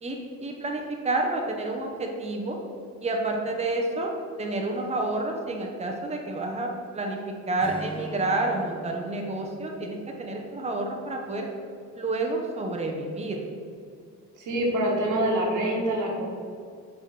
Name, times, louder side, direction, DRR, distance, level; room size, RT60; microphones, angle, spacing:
voice 1, 0.0-2.6 3.0-4.1 4.4-7.2 7.5-11.5 12.0-13.4, right 2 dB, 20° right, 1 dB, 1.0 m, -29 dB
Acoustic guitar / Strum, 7.6-11.1, right 1 dB, 15° left, 1.1 m, -42 dB
voice 2, 14.4-16.3, right 1 dB, 80° right, -2 dB, 1.7 m, -25 dB
6.4 x 3.6 x 6.0 m, 2.3 s
cardioid pair, 90°, 30 cm